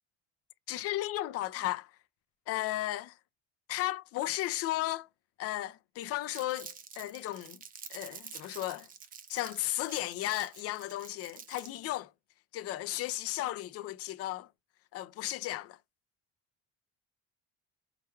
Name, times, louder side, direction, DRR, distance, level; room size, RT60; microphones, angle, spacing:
voice 1, 0.7-1.9 2.5-3.2 3.7-5.1 5.4-7.6 7.9-8.9 9.3-12.1 12.5-14.5 14.9-15.8, left 15 dB, 50° left, 0.4 m, -35 dB
Crumpling crinkling, 6.3-11.8, right 7 dB, 30° right, 0.5 m, -48 dB
4.7 x 2.2 x 3.0 m
cardioid pair, 170°, 31 cm